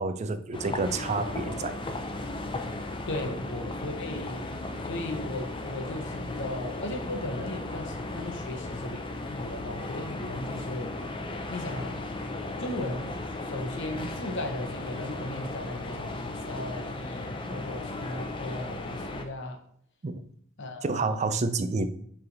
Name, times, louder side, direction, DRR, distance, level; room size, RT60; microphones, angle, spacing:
voice 1, 0.0-1.8 20.0-20.2 20.8-21.9, right 3 dB, 35° right, 10 dB, 0.4 m, -29 dB
sound 1, 0.5-19.2, left 2 dB, 25° left, 0.5 m, -36 dB
voice 2, 3.1-9.0 9.3-10.9 11.5-11.9 12.6-13.1 13.4-19.6 20.6-21.3, left 1 dB, 60° left, 5 dB, 0.8 m, -37 dB
6.9 x 3.4 x 3.9 m, 0.64 s
head